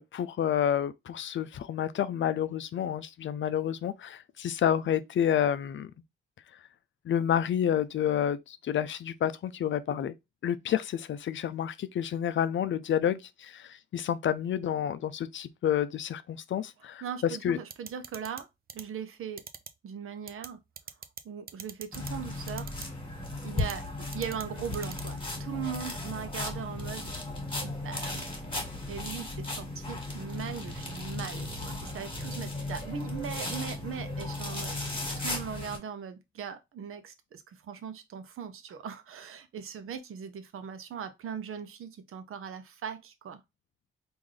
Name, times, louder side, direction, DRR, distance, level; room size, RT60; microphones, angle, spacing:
voice 1, 0.0-5.9 7.0-10.1 10.4-17.6, left 9 dB, 65° left, 0.4 m, -29 dB
voice 2, 17.0-18.5 18.7-19.4 19.8-20.6 21.2-22.7 23.4-27.2 27.6-28.3 28.9-34.8 35.2-43.4, right 7 dB, 90° right, 0.7 m, -39 dB
sound 1, 17.7-18.4 18.7-18.8 19.4-19.7 20.3-20.5 20.8-21.2 21.5-22.1 22.5-22.8 23.6-23.7 24.1-24.4 24.7-25.0, right 7 dB, 45° right, 0.4 m, -41 dB
sound 2, 21.9-35.8, left 2 dB, 25° left, 1.5 m, -36 dB
3.7 x 2.6 x 3.2 m
wide cardioid pair, 120°, 21 cm